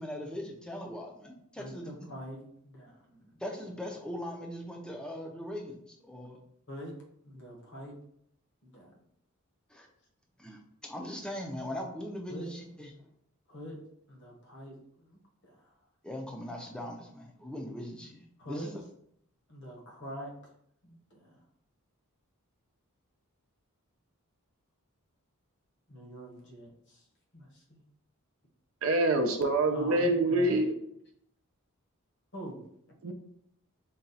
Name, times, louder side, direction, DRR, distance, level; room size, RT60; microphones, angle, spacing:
voice 1, 0.0-2.1 3.4-6.4 9.7-9.9 10.4-12.9 16.0-18.8, left 1 dB, 5° left, 1 dB, 0.5 m, -40 dB
voice 2, 1.6-3.3 6.7-6.9 7.2-8.0 8.6-9.0 12.3-12.5 13.5-13.8 14.1-15.6 18.4-18.7 19.5-20.3 20.8-21.4 25.9-27.0 27.3-27.8 29.7-30.6 32.3-32.6, equal, 55° left, -1 dB, 1.0 m, -44 dB
voice 3, 28.8-30.7 33.0-33.1, right 2 dB, 65° right, 4 dB, 0.5 m, -26 dB
4.0 x 2.3 x 4.0 m, 0.69 s
head